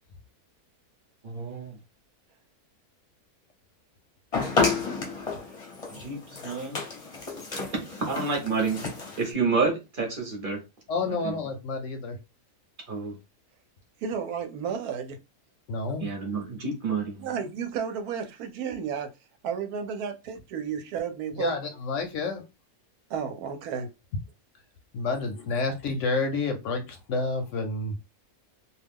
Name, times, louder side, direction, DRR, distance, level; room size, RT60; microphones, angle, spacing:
voice 1, 1.2-1.8 6.0-6.8 7.9-8.8 9.2-10.6 11.2-11.3 12.9-13.2 16.0-17.3, right 4 dB, 40° right, 0.9 m, -29 dB
sound 1, 4.3-9.3, left 4 dB, 35° left, 0.6 m, -31 dB
voice 2, 10.9-12.2 15.7-16.1 21.4-22.4 24.9-27.9, left 3 dB, 65° left, 0.8 m, -29 dB
voice 3, 14.0-15.2 17.2-19.1 19.4-21.6 23.1-23.9, right 7 dB, 85° right, 1.1 m, -32 dB
2.5 x 2.3 x 3.4 m
omnidirectional pair, 1.6 m